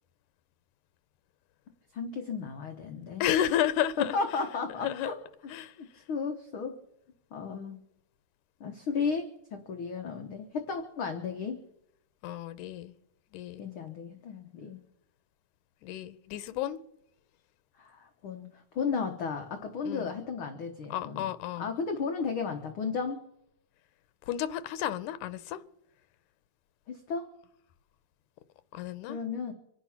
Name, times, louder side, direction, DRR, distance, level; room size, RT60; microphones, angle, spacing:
voice 1, 1.9-3.3 4.0-5.2 5.8-6.8 7.3-7.8 8.6-11.6 13.6-14.8 17.8-21.3 21.6-23.2 26.9-27.3 29.1-29.5, left 5 dB, 60° left, 1.5 m, -34 dB
voice 2, 3.2-4.2 4.8-5.1 5.5-5.8 12.2-12.9 13.3-13.7 15.8-16.8 19.9-20.1 20.9-21.7 24.3-25.6 28.7-29.2, left 11 dB, 90° left, 2.2 m, -31 dB
25.5 x 8.6 x 5.8 m
omnidirectional pair, 3.4 m